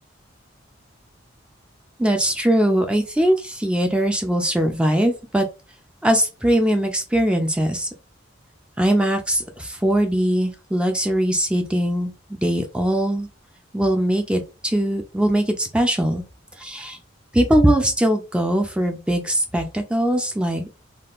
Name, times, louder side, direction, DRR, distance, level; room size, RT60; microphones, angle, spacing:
voice 1, 2.0-5.5 6.0-7.9 8.8-13.3 13.7-16.2 16.5-17.0 17.3-20.7, right 1 dB, 5° right, 4 dB, 0.3 m, -21 dB
3.5 x 2.3 x 2.4 m, 0.30 s
head